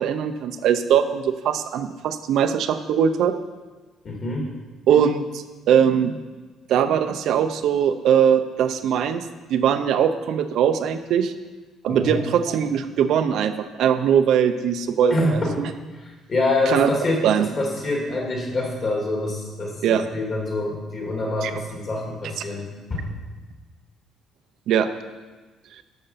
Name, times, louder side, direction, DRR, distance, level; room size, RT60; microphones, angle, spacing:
voice 1, 0.0-3.3 4.9-6.2 6.7-11.3 11.8-15.7 16.7-16.9 17.2-17.5 19.8-20.0 21.4-21.5 24.7-24.9, right 8 dB, 60° right, 8 dB, 0.6 m, -21 dB
voice 2, 4.0-4.5 11.9-12.2 15.1-15.6 16.0-17.2 17.6-23.1, left 2 dB, 30° left, -1 dB, 2.5 m, -26 dB
12.0 x 6.5 x 5.7 m, 1.3 s
cardioid pair, 170°, 0 cm